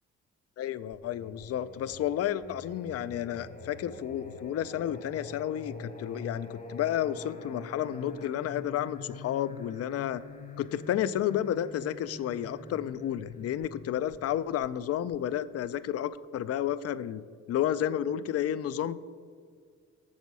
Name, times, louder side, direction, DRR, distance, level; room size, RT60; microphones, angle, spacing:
voice 1, 0.6-10.2 10.6-19.0, left 11 dB, 55° left, 15 dB, 0.4 m, -31 dB
Singing, 0.9-15.6, left 3 dB, 25° left, 0.8 m, -46 dB
7.2 x 6.3 x 5.4 m, 2.1 s
cardioid pair, 90°, 30 cm